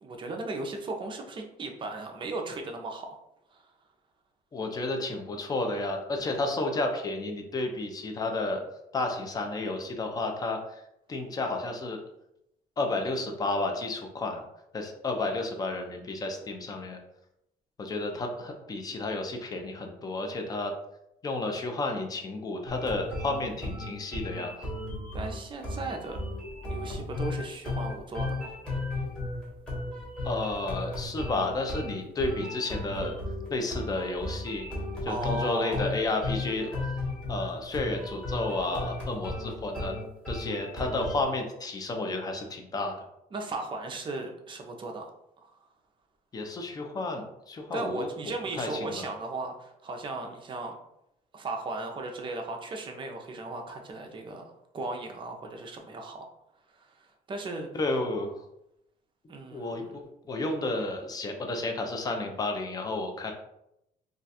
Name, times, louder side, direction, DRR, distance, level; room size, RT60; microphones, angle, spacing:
voice 1, 0.0-3.2 3.5-3.6 25.1-26.2 26.7-28.5 35.0-35.8 43.3-45.1 45.4-45.5 47.7-50.7 51.3-56.3 56.7-57.7 59.3-59.9, right 2 dB, 30° right, 3 dB, 0.5 m, -36 dB
voice 2, 4.5-8.6 8.9-10.8 11.1-12.0 12.8-14.4 14.7-17.0 17.8-20.7 21.2-24.7 30.2-33.1 33.5-34.7 35.0-36.7 37.3-39.9 40.3-42.9 46.3-48.1 48.5-49.1 57.7-58.3 59.5-63.3, left 2 dB, 25° left, 3 dB, 0.5 m, -31 dB
sound 1, 22.7-41.2, left 2 dB, 5° left, 1.2 m, -35 dB
2.4 x 2.3 x 4.0 m, 0.83 s
cardioid pair, 135°, 16 cm